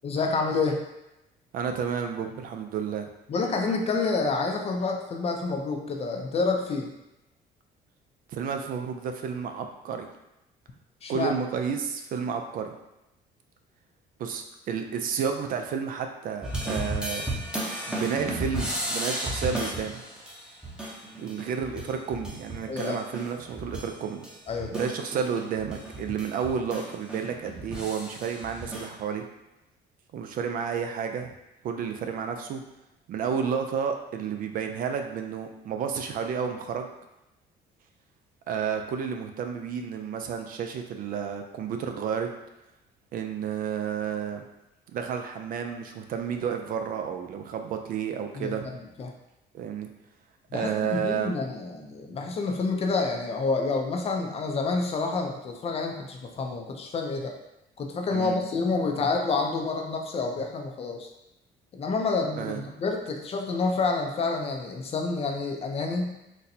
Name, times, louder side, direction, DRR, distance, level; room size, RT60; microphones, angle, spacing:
voice 1, 0.0-0.8 3.3-6.9 11.0-11.3 22.7-23.0 24.5-24.9 48.3-48.5 49.0-49.1 50.5-57.3 57.8-61.1 61.7-66.2, left 4 dB, 35° left, 2 dB, 0.5 m, -28 dB
voice 2, 1.5-3.1 8.3-10.1 11.1-12.7 14.2-17.2 17.9-20.0 21.2-24.2 24.7-29.2 30.1-31.3 31.6-32.6 33.1-36.9 38.5-42.3 43.1-44.4 44.9-48.7 49.5-49.9 50.5-51.3 58.1-58.4 62.4-62.6, right 7 dB, 55° right, 5 dB, 0.4 m, -31 dB
sound 1, 16.4-23.9 24.2-28.9, right 1 dB, 5° right, 0.7 m, -34 dB
4.1 x 2.1 x 2.7 m, 0.92 s
cardioid pair, 110°, 17 cm